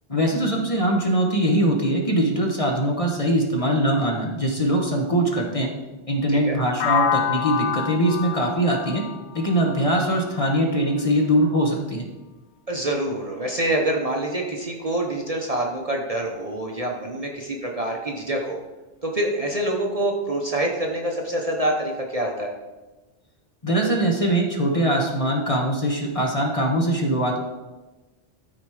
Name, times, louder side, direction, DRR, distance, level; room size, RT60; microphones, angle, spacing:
voice 1, 0.1-5.7 6.1-9.0 9.3-12.1 23.6-27.4, right 1 dB, 30° left, 0 dB, 1.3 m, -22 dB
sound 1, 6.8-10.7, left 7 dB, 55° left, 0.5 m, -27 dB
voice 2, 12.7-18.6 19.0-22.5, right 1 dB, 35° right, 0 dB, 1.0 m, -26 dB
13.0 x 4.4 x 4.8 m, 1.2 s
omnidirectional pair, 1.2 m